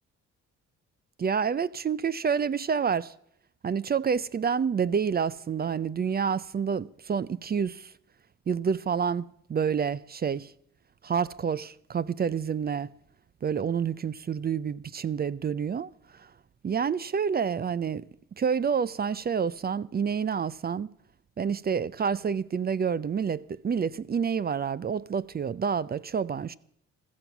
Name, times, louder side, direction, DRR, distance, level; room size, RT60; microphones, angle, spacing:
voice 1, 1.2-3.1 3.6-7.9 8.5-10.5 11.0-12.9 13.4-15.9 16.6-18.0 18.4-20.9 21.4-26.5, right 6 dB, 30° right, 0.5 m, -28 dB
15.0 x 13.5 x 6.0 m
cardioid pair, 90°, 30 cm